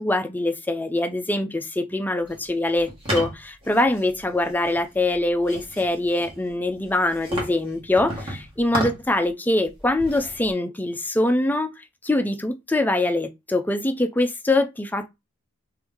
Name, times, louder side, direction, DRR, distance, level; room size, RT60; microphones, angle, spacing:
voice 1, 0.0-11.7 12.0-15.1, left 2 dB, 10° left, 0.4 m, -23 dB
sound 1, 2.3-9.3 9.6-10.5, right 1 dB, 25° right, 1.3 m, -34 dB
3.1 x 2.6 x 3.6 m
head